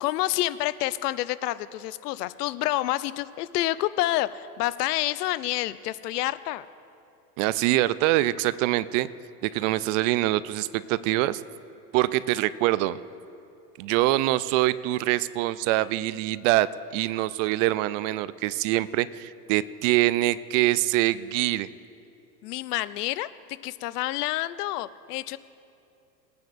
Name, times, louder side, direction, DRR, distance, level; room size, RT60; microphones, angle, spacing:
voice 1, 0.0-6.7 22.4-23.3 23.6-25.4, left 16 dB, 75° left, 16 dB, 0.6 m, -28 dB
voice 2, 7.4-9.1 9.4-11.4 11.9-13.0 13.8-16.7 16.9-21.7, right 16 dB, 55° right, 17 dB, 0.5 m, -24 dB
20.5 x 9.4 x 2.6 m, 2.7 s
hypercardioid pair, 110°, 47 cm